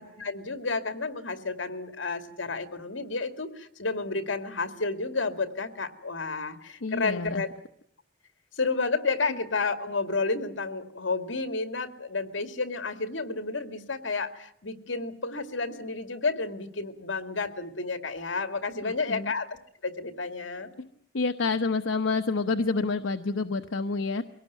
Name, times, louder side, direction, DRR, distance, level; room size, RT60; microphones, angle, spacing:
voice 1, 0.0-7.5 8.5-19.5 19.8-20.7, left 3 dB, 75° left, 9 dB, 2.3 m, -31 dB
voice 2, 6.8-7.4 18.8-19.3 20.8-20.9 21.1-24.2, left 3 dB, 90° left, 7 dB, 1.0 m, -28 dB
23.5 x 18.0 x 9.3 m, 0.71 s
head